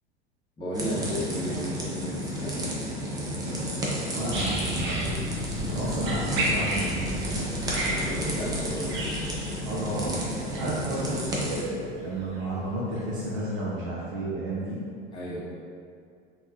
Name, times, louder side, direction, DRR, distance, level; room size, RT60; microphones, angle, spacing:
voice 1, 0.6-2.6 7.9-9.0 15.1-15.4, equal, 15° left, -8 dB, 0.8 m, -33 dB
sound 1, 0.7-11.6, equal, 10° right, 0.4 m, -32 dB
voice 2, 4.1-5.3 5.7-7.5 9.6-14.8, right 1 dB, 55° right, -7 dB, 0.7 m, -32 dB
sound 2, 4.3-12.4 13.0-13.1, right 1 dB, 35° right, 0.9 m, -33 dB
3.5 x 2.2 x 2.6 m, 2.3 s
figure-of-eight pair, 80°, 33 cm